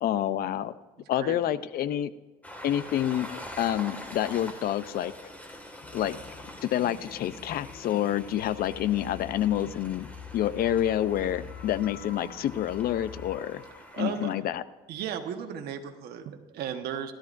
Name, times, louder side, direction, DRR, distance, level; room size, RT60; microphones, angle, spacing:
voice 1, 0.0-0.7 1.1-2.1 2.6-5.1 5.9-6.2 6.6-10.1 10.3-13.6 14.0-14.6, left 11 dB, 65° left, 15 dB, 0.6 m, -28 dB
Train, 2.4-14.3, left 1 dB, 10° left, 1.9 m, -45 dB
sound 1, 5.8-13.4, left 7 dB, 35° left, 0.8 m, -46 dB
voice 2, 13.9-14.3 14.9-17.1, right 8 dB, 70° right, 5 dB, 1.3 m, -35 dB
16.5 x 12.5 x 2.6 m, 1.2 s
cardioid pair, 110°, 17 cm